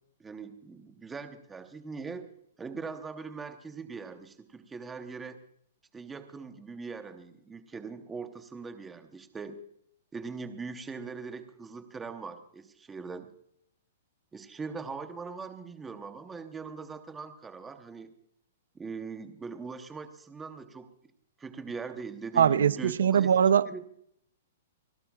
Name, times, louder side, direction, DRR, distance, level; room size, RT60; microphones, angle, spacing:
voice 1, 0.2-2.3 2.6-5.4 5.9-9.6 10.1-13.3 14.3-18.1 18.7-20.9 21.4-23.3 23.6-23.8, right 4 dB, 10° right, 0.8 m, -41 dB
voice 2, 22.4-23.6, right 8 dB, 80° right, 0.5 m, -22 dB
30.0 x 12.0 x 2.3 m
hypercardioid pair, 175°, 0 cm